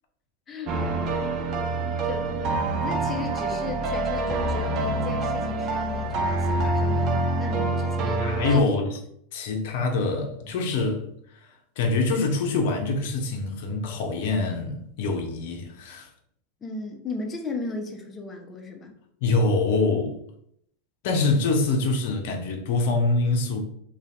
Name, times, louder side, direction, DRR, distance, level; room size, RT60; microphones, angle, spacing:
voice 1, 0.5-0.8 2.0-8.7 16.6-18.9, left 3 dB, 25° left, 0.7 m, -36 dB
sound 1, 0.7-8.6, right 2 dB, 45° right, 0.5 m, -26 dB
voice 2, 8.2-9.0 9.3-11.0 11.3-16.1 19.2-20.2 21.0-23.6, left 3 dB, 65° left, 0.7 m, -25 dB
2.6 x 2.4 x 3.3 m
hypercardioid pair, 100°, 0 cm